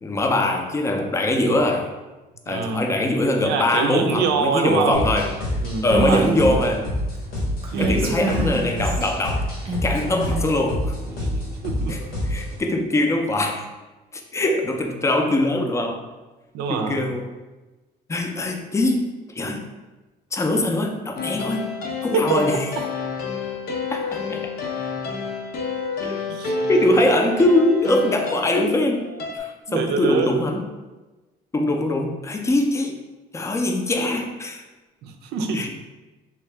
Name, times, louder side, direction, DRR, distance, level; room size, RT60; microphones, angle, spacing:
voice 1, 0.0-1.9 2.5-5.3 5.8-6.9 7.8-9.5 9.8-10.9 11.9-12.0 12.3-13.7 14.1-16.0 16.7-17.3 18.1-19.7 20.3-21.8 22.0-22.6 23.9-24.5 26.0-26.2 26.7-29.1 29.3-30.6 31.5-33.0 33.3-34.6 35.5-35.7, left 1 dB, 15° left, 3 dB, 0.4 m, -22 dB
voice 2, 2.5-2.9 3.4-5.1 5.6-6.3 7.7-8.1 8.4-8.7 11.1-11.3 11.6-12.0 16.5-17.1 21.9-22.6 26.3-26.7 29.7-30.3 35.0-35.7, right 5 dB, 80° right, 5 dB, 0.5 m, -25 dB
sound 1, 4.9-12.6, left 1 dB, 85° left, 1.3 m, -27 dB
Female speech woman speaking, 5.9-6.6 7.6-9.1 9.6-10.5, right 3 dB, 35° right, 0.7 m, -26 dB
sound 2, 21.2-29.4, left 3 dB, 65° left, 0.6 m, -29 dB
3.4 x 2.8 x 3.2 m, 1.2 s
cardioid pair, 110°, 17 cm